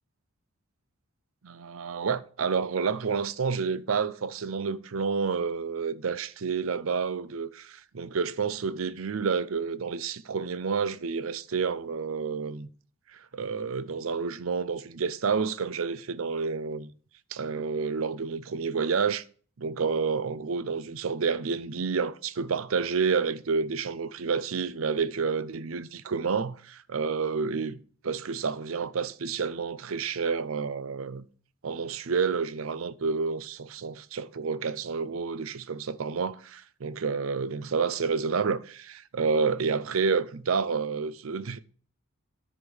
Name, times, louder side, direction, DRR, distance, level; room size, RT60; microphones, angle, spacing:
voice 1, 1.4-12.7 13.1-16.9 17.3-19.2 19.6-27.8 28.0-31.2 31.6-41.6, right 5 dB, 85° right, 0.6 m, -29 dB
9.8 x 5.2 x 7.1 m
head